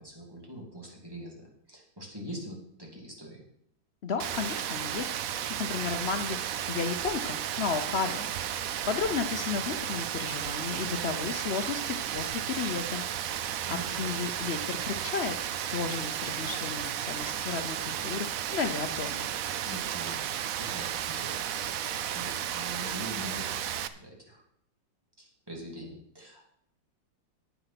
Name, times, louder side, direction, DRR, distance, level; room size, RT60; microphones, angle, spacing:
voice 1, 0.0-3.4 13.7-14.2 19.6-20.2 20.5-23.7 24.0-24.4 25.2-26.4, equal, 10° right, -2 dB, 2.6 m, -43 dB
voice 2, 4.0-5.1 5.6-8.3 8.6-15.4 15.7-19.3, left 6 dB, 90° left, 7 dB, 0.5 m, -33 dB
Rain, 4.2-23.9, right 10 dB, 70° right, 0.8 m, -33 dB
9.5 x 9.1 x 5.9 m, 0.68 s
omnidirectional pair, 2.1 m